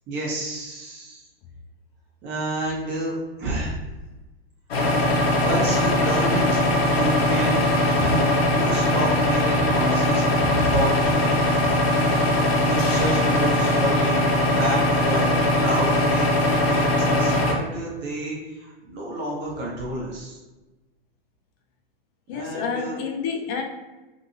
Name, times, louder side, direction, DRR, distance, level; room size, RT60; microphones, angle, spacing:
voice 1, 0.1-1.2 2.2-3.7 5.4-6.7 6.9-7.6 8.0-11.4 12.6-15.3 15.6-20.4 22.3-23.0, right 1 dB, 35° right, -4 dB, 1.0 m, -29 dB
sound 1, 4.7-17.5, left 1 dB, 85° left, 0.8 m, -21 dB
voice 2, 22.3-23.6, left 6 dB, 35° left, 3 dB, 0.5 m, -29 dB
2.7 x 2.5 x 2.6 m, 1.1 s
hypercardioid pair, 110°, 30 cm